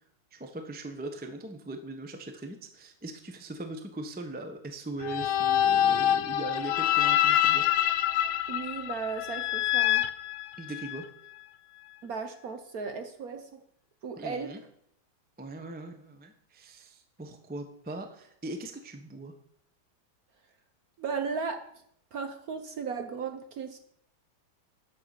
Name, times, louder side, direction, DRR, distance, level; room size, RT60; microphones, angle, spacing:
voice 1, 0.3-7.6 10.6-11.0 14.2-14.6 15.4-19.3, right 2 dB, 10° right, 6 dB, 0.5 m, -40 dB
sound 1, 5.0-11.0, left 12 dB, 85° left, 1.5 m, -26 dB
voice 2, 8.5-10.1 12.0-13.6 14.0-14.5 21.0-21.6 22.1-23.8, right 5 dB, 55° right, 7 dB, 1.1 m, -35 dB
11.0 x 6.7 x 6.7 m, 0.71 s
omnidirectional pair, 2.2 m